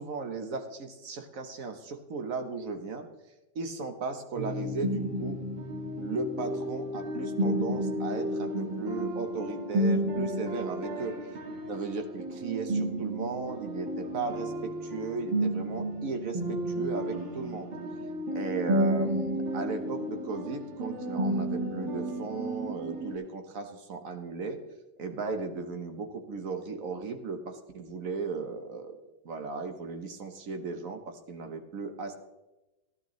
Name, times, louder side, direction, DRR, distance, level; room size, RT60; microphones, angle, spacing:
voice 1, 0.0-3.1 3.5-5.4 6.0-11.2 11.7-17.7 18.3-24.6 25.0-29.0 29.2-32.2, right 4 dB, 50° right, 7 dB, 1.2 m, -36 dB
sound 1, 4.3-23.1, right 1 dB, 80° right, 2.4 m, -32 dB
14.5 x 11.0 x 3.1 m, 1.0 s
omnidirectional pair, 2.0 m